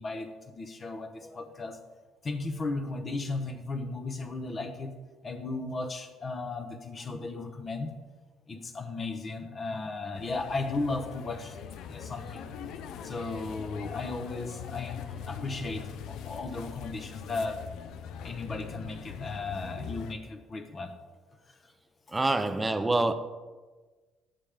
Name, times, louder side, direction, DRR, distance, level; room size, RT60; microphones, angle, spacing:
voice 1, 0.0-1.8 2.2-7.9 8.5-11.6 11.9-12.5 13.0-17.6 18.2-20.9 21.5-21.6, left 3 dB, 25° left, 0.8 m, -35 dB
sound 1, 10.1-20.1, left 7 dB, 65° left, 0.5 m, -42 dB
voice 2, 22.1-23.1, right 2 dB, 10° right, 0.4 m, -26 dB
11.5 x 8.9 x 3.4 m
cardioid pair, 160°, 0 cm